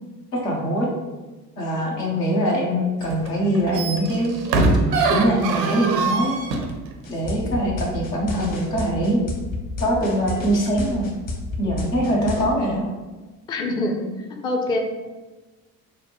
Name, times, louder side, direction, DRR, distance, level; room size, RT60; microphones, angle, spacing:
voice 1, 0.3-0.9 1.6-4.3 5.1-6.4 7.1-9.2 9.8-11.1 11.6-12.9, right 1 dB, 80° left, -3 dB, 1.1 m, -22 dB
sound 1, 3.0-3.3 3.6-6.8 7.2-7.3, right 3 dB, 85° right, 0.7 m, -22 dB
sound 2, 7.0-12.4, left 3 dB, 40° left, 1.0 m, -30 dB
voice 2, 13.5-14.8, left 2 dB, 10° left, 2 dB, 0.3 m, -26 dB
6.3 x 2.1 x 3.0 m, 1.2 s
figure-of-eight pair, 60°, 48 cm